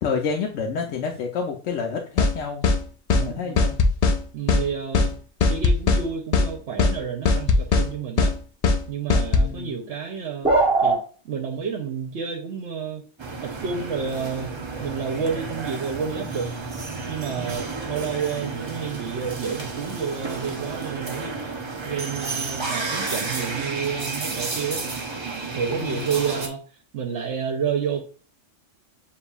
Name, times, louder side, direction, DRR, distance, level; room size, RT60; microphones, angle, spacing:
voice 1, 0.0-2.7 3.3-3.7 9.3-9.7 25.7-26.1, left 5 dB, 85° left, 2 dB, 1.0 m, -29 dB
sound 1, 2.2-2.3 2.6-2.8 3.1-3.3 3.6-4.2 4.5-4.6 4.9-5.1 5.4-6.0 6.3-6.5 6.8-6.9 7.2-7.9 8.2-8.3 8.6-8.8 9.1-9.5, left 4 dB, 70° left, 0.3 m, -19 dB
voice 2, 3.1-3.7 4.3-5.2 5.5-8.3 8.9-10.5 10.8-11.0 11.2-13.0 13.4-16.5 17.1-21.5 21.8-24.8 25.5-26.6 26.9-28.0, right 6 dB, 70° right, 1 dB, 1.0 m, -30 dB
sound 2, 10.4-11.0, right 3 dB, 5° right, 1.1 m, -18 dB
sound 3, 13.2-26.5, right 3 dB, 35° right, 0.5 m, -31 dB
6.8 x 2.6 x 2.3 m, 0.39 s
omnidirectional pair, 1.3 m